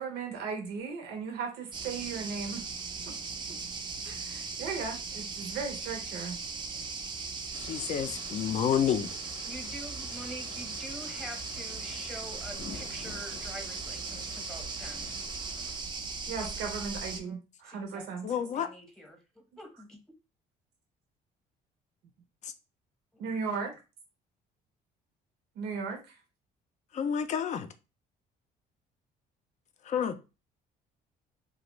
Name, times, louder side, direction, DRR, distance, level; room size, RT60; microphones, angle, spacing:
voice 1, 0.0-2.7 3.1-3.2 4.0-6.4 16.3-18.4 23.2-23.7 25.6-26.2, right 5 dB, 80° right, 0.5 m, -36 dB
sound 1, 1.7-17.2, right 4 dB, 25° right, 0.4 m, -38 dB
sound 2, 7.5-15.8, left 4 dB, 90° left, 0.8 m, -49 dB
voice 2, 7.5-9.1 18.2-18.7 26.9-27.7 29.9-30.2, left 8 dB, 45° left, 0.4 m, -29 dB
voice 3, 9.4-15.1 16.4-16.5 17.2-17.4 17.6-18.1 18.4-19.2 19.6-20.0, equal, 5° left, 0.8 m, -45 dB
2.4 x 2.0 x 2.9 m
cardioid pair, 110°, 17 cm